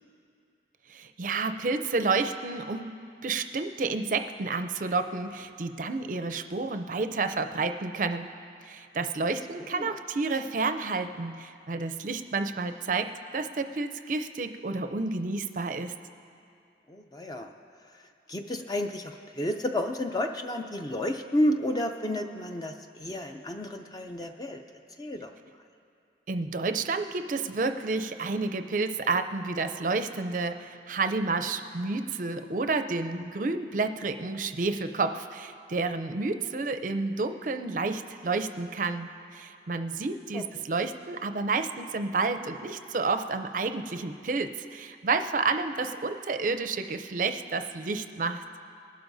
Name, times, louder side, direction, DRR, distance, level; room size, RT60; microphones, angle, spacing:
voice 1, 0.9-8.3 8.6-15.9 26.3-48.4, right 3 dB, 45° right, 8 dB, 0.5 m, -30 dB
voice 2, 16.9-17.5 18.3-24.6 25.0-25.3 40.3-40.6, left 1 dB, 20° left, 4 dB, 0.4 m, -31 dB
20.0 x 12.0 x 2.6 m, 2.5 s
head